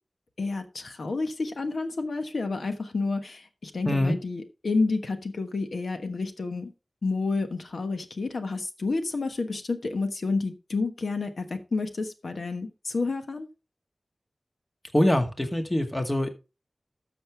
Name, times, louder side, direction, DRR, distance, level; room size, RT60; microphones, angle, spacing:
voice 1, 0.4-6.7 7.0-13.5, left 3 dB, 85° left, 1.2 m, -30 dB
voice 2, 14.9-16.3, left 1 dB, 25° left, 1.8 m, -24 dB
12.5 x 6.7 x 3.4 m
wide cardioid pair, 50°, 0 cm